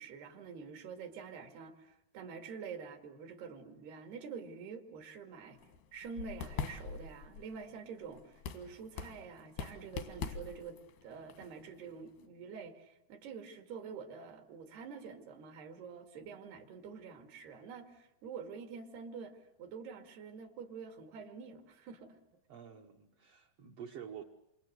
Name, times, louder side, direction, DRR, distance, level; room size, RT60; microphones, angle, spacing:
voice 1, 0.0-5.6 5.9-22.2, right 5 dB, 80° right, 6 dB, 4.3 m, -47 dB
sound 1, 5.6-12.2, left 6 dB, 85° left, 3.7 m, -44 dB
voice 2, 22.5-24.2, right 8 dB, 65° right, 1 dB, 1.5 m, -48 dB
28.0 x 26.5 x 8.0 m, 0.80 s
omnidirectional pair, 4.6 m